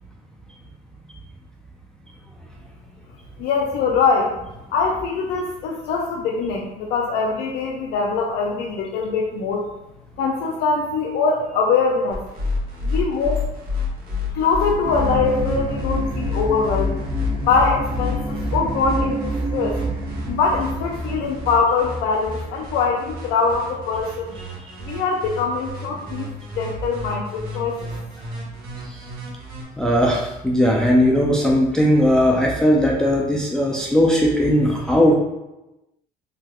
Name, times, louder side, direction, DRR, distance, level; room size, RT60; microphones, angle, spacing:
voice 1, 3.4-4.3 4.7-9.7 10.2-12.2 12.8-13.4 14.3-16.9 17.4-19.8 20.3-24.3 24.8-27.9, left 4 dB, 80° left, -1 dB, 0.4 m, -22 dB
sound 1, 12.1-29.6, left 3 dB, 60° right, 1.0 m, -30 dB
sound 2, 14.8-21.6, right 2 dB, 30° right, 0.7 m, -29 dB
voice 2, 29.8-35.1, equal, 5° left, -2 dB, 0.4 m, -18 dB
3.3 x 2.7 x 2.3 m, 0.96 s
cardioid pair, 110°, 17 cm